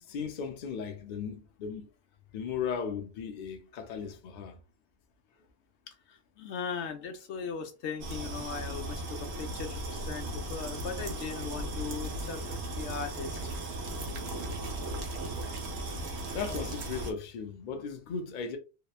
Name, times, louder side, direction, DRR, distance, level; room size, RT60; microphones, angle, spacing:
voice 1, 0.1-1.9 2.3-4.6 15.8-15.9 16.3-18.6, left 6 dB, 55° left, 0.6 m, -36 dB
voice 2, 6.4-13.4, left 6 dB, 85° left, 0.9 m, -38 dB
sound 1, 8.0-17.1, right 1 dB, 80° right, 1.0 m, -36 dB
2.8 x 2.2 x 2.3 m
omnidirectional pair, 1.1 m